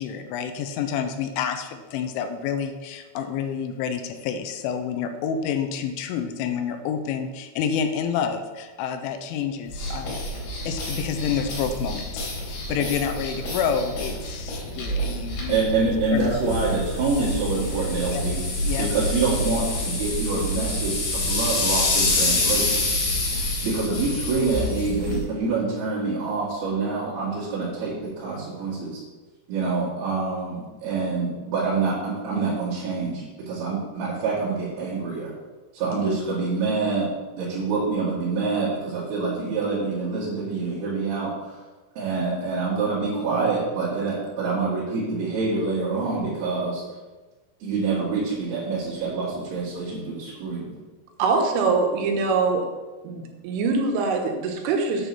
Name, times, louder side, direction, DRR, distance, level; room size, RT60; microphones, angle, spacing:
voice 1, 0.0-10.2 10.6-15.6 16.1-16.4 18.1-18.2 18.7-18.9, left 7 dB, 85° left, 7 dB, 3.1 m, -28 dB
sound 1, 9.7-25.2, left 1 dB, 65° left, 5.2 m, -27 dB
voice 2, 15.5-18.4 18.8-22.9 23.6-29.0 29.5-35.3 35.7-37.1 37.4-41.6 42.0-46.8 47.6-50.7, right 4 dB, 55° right, -10 dB, 3.5 m, -26 dB
voice 3, 51.2-52.7 53.0-55.1, right 4 dB, 85° right, 4 dB, 3.6 m, -23 dB
9.1 x 4.5 x 6.8 m, 1.2 s
omnidirectional pair, 5.6 m